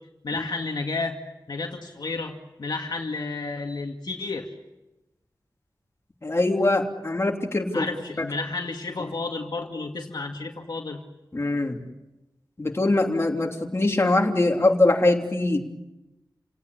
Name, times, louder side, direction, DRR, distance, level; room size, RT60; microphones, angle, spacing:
voice 1, 0.2-1.2 1.5-4.5 7.7-11.0, left 3 dB, 65° left, 2 dB, 2.2 m, -31 dB
voice 2, 6.2-7.9 8.2-8.3 11.3-11.8 12.6-15.6, left 2 dB, 35° left, 1 dB, 3.3 m, -22 dB
30.0 x 18.0 x 8.4 m, 1.0 s
wide cardioid pair, 95°, 8 cm